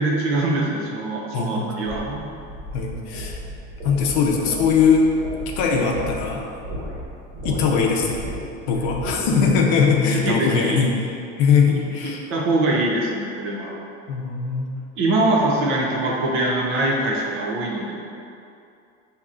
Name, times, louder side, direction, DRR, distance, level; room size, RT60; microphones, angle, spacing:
voice 1, 0.0-2.2 9.4-9.5 10.1-10.8 12.3-13.8 15.0-17.9, right 2 dB, 40° right, -3 dB, 0.6 m, -23 dB
voice 2, 1.3-1.7 2.7-3.4 3.8-5.1 5.6-6.4 7.4-8.2 8.7-10.9 11.4-12.2 14.1-14.7, left 5 dB, 65° left, 0 dB, 0.7 m, -20 dB
sound 1, 1.8-9.6, equal, 70° right, 1.4 m, -34 dB
7.0 x 2.9 x 2.5 m, 2.5 s
cardioid pair, 170°, 34 cm